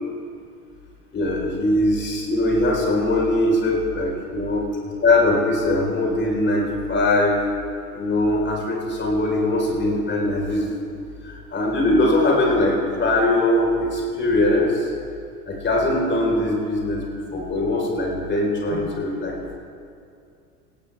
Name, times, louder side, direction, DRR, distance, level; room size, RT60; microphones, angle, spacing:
voice 1, 1.1-4.7 5.0-7.4 7.9-10.7 11.2-14.9 15.5-19.5, left 1 dB, 25° left, -1 dB, 4.2 m, -21 dB
17.5 x 17.0 x 3.4 m, 2.4 s
figure-of-eight pair, 85°, 48 cm